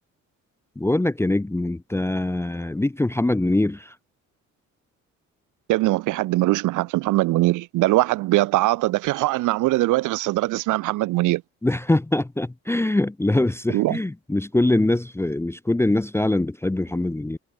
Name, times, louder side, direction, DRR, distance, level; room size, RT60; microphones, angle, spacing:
voice 1, 0.8-3.9 11.6-17.4, left 2 dB, 10° left, 0.7 m, -23 dB
voice 2, 5.7-11.4 13.7-14.0, right 18 dB, 85° right, 0.6 m, -21 dB
cardioid pair, 90°, 30 cm